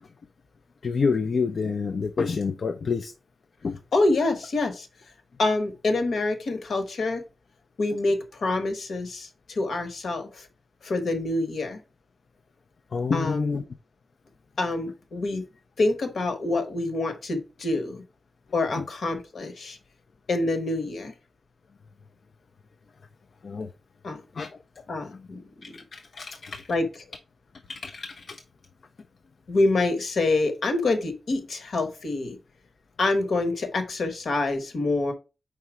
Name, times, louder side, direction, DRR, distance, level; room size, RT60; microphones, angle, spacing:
voice 1, 0.8-3.1 3.6-3.8 12.9-13.6 23.4-23.7 24.4-24.5 25.9-26.7 27.7-28.4, left 5 dB, 55° left, 0.5 m, -28 dB
voice 2, 3.9-4.9 5.4-7.2 7.8-10.5 10.8-11.8 13.1-13.6 14.6-15.4 15.8-18.0 18.5-19.8 20.3-21.1 24.0-24.2 24.9-25.7 26.7-27.0 29.5-32.4 33.0-35.1, left 2 dB, 70° left, 1.3 m, -26 dB
4.8 x 4.1 x 4.8 m
wide cardioid pair, 155°, 0 cm